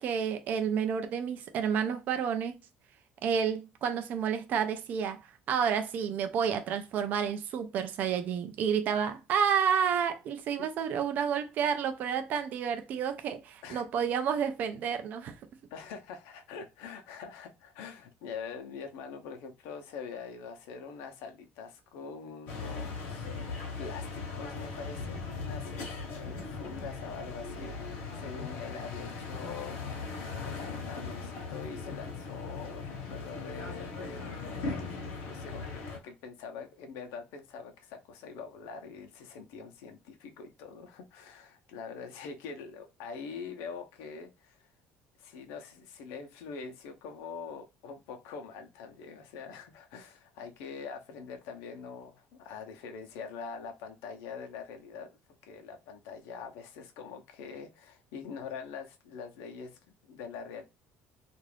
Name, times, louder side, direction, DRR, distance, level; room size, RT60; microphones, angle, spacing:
voice 1, 0.0-2.5 3.2-5.2 5.5-15.3, right 7 dB, 40° right, 0.4 m, -30 dB
voice 2, 15.7-25.8 26.1-44.7 45.2-60.6, left 5 dB, 85° left, 0.7 m, -44 dB
sound 1, 22.5-36.0, left 4 dB, 60° left, 0.9 m, -39 dB
2.5 x 2.4 x 3.2 m
cardioid pair, 180°, 4 cm